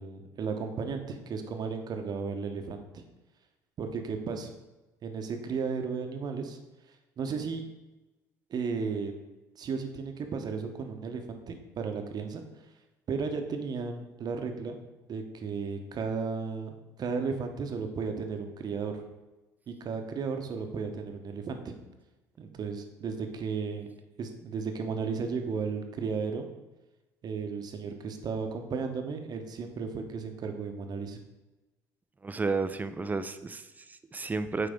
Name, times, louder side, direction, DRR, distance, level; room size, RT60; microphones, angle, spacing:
voice 1, 0.0-3.0 3.8-4.5 5.0-6.6 7.2-7.6 8.5-9.1 9.6-12.5 13.1-14.8 15.1-16.7 17.0-18.9 19.7-21.8 22.4-23.9 24.2-26.5 27.2-31.2, right 5 dB, 45° right, 5 dB, 1.0 m, -34 dB
voice 2, 32.2-34.7, right 4 dB, 15° right, 11 dB, 0.5 m, -32 dB
9.2 x 3.4 x 3.6 m, 1.1 s
hypercardioid pair, 60°, 10 cm